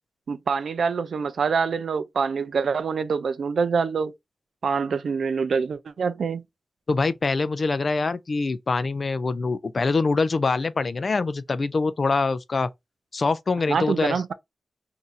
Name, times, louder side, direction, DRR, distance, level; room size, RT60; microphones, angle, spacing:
voice 1, 0.3-4.1 4.6-6.4 13.7-14.3, right 5 dB, 80° right, 0.3 m, -25 dB
voice 2, 6.9-12.7 13.1-14.2, left 3 dB, 45° left, 0.4 m, -24 dB
2.6 x 2.5 x 4.1 m
wide cardioid pair, 115°, 0 cm